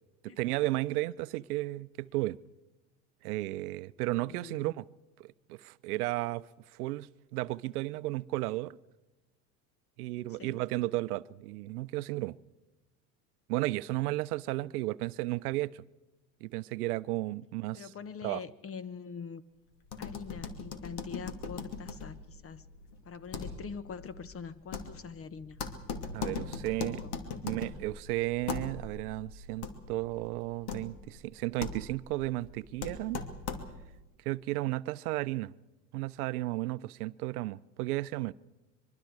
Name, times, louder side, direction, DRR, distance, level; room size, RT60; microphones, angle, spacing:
voice 1, 0.2-2.4 3.2-4.9 5.2-6.4 6.7-8.8 10.0-12.4 13.5-15.8 16.4-17.9 18.2-18.4 26.1-27.0 27.4-33.2 34.2-35.5 35.9-38.3, right 18 dB, 65° right, 0.7 m, -34 dB
voice 2, 4.2-4.8 10.3-10.6 17.7-19.4 20.0-22.6 23.0-25.6 26.8-27.4, left 6 dB, 25° left, 1.2 m, -44 dB
sound 1, 19.8-34.0, left 5 dB, 50° left, 2.7 m, -40 dB
24.5 x 23.0 x 4.8 m
hypercardioid pair, 85°, 49 cm